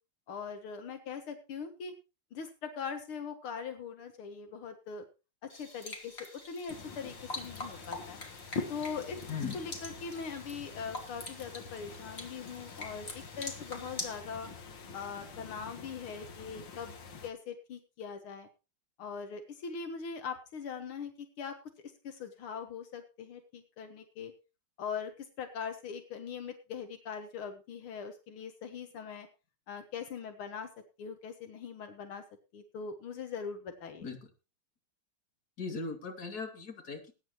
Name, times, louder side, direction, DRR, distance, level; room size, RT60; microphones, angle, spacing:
voice 1, 0.3-1.9 2.3-5.0 5.4-8.2 8.7-14.5 14.9-17.0 17.2-18.5 19.0-21.6 22.0-24.3 24.8-29.3 29.7-30.7 31.0-32.2 32.5-34.1, left 6 dB, 80° left, 6 dB, 2.2 m, -41 dB
sound 1, 5.5-14.2, left 2 dB, 30° left, 2.5 m, -45 dB
sound 2, 6.7-17.3, left 5 dB, 65° left, 2.1 m, -45 dB
voice 2, 35.6-37.1, left 4 dB, 45° left, 3 dB, 2.8 m, -38 dB
20.5 x 9.5 x 3.0 m, 0.30 s
omnidirectional pair, 2.3 m